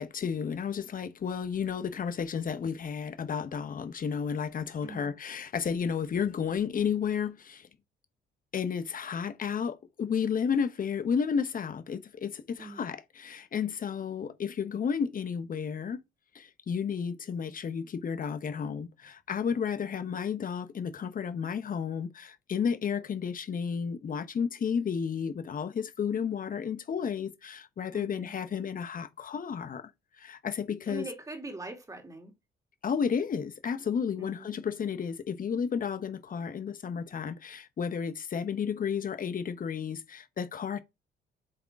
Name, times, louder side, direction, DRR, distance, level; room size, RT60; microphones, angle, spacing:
voice 1, 0.0-7.7 8.5-16.0 16.3-29.9 30.2-31.0 32.8-40.8, left 7 dB, 45° left, 1.0 m, -32 dB
voice 2, 27.9-28.3 30.9-32.3 34.2-34.5, right 2 dB, 15° right, 2.4 m, -42 dB
7.9 x 3.7 x 3.6 m
cardioid pair, 90°, 20 cm